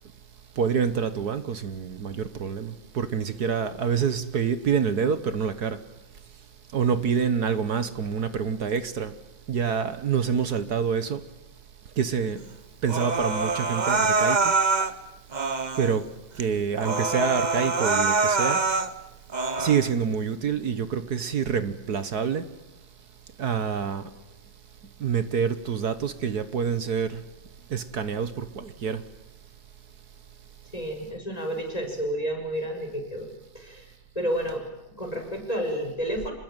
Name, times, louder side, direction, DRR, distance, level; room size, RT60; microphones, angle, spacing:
voice 1, 0.6-5.8 6.7-9.1 9.5-11.2 12.0-12.4 12.8-14.5 15.8-18.6 19.6-22.5 23.4-24.1 25.0-27.2 27.7-29.0, right 6 dB, 55° right, 1.6 m, -27 dB
Human voice, 12.9-14.9 15.3-16.0 16.4-16.5 16.8-18.9 19.3-19.9, right 3 dB, 30° right, 0.9 m, -25 dB
voice 2, 30.7-33.3 33.5-33.9 34.2-34.6 35.0-36.3, equal, 20° left, 5.6 m, -30 dB
26.5 x 20.5 x 9.0 m
omnidirectional pair, 2.1 m